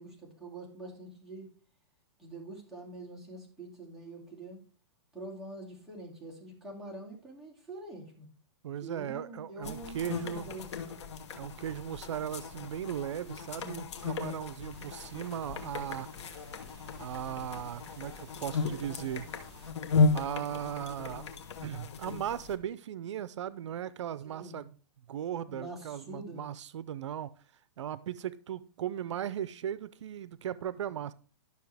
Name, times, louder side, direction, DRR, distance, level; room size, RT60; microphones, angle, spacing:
voice 1, 0.0-1.5 2.2-4.6 5.1-8.3 8.8-10.7 24.2-24.6 25.5-26.5, right 2 dB, ahead, -6 dB, 2.6 m, -45 dB
voice 2, 8.6-10.5 11.3-16.1 16.9-19.3 20.1-21.2 21.6-24.7 25.1-27.3 27.8-31.1, right 10 dB, 80° right, 17 dB, 0.5 m, -37 dB
sound 1, 9.6-22.6, left 4 dB, 70° left, 1.4 m, -35 dB
sound 2, 14.7-19.7, right 4 dB, 40° right, 4.4 m, -57 dB
12.0 x 6.4 x 3.4 m, 0.39 s
hypercardioid pair, 160°, 15 cm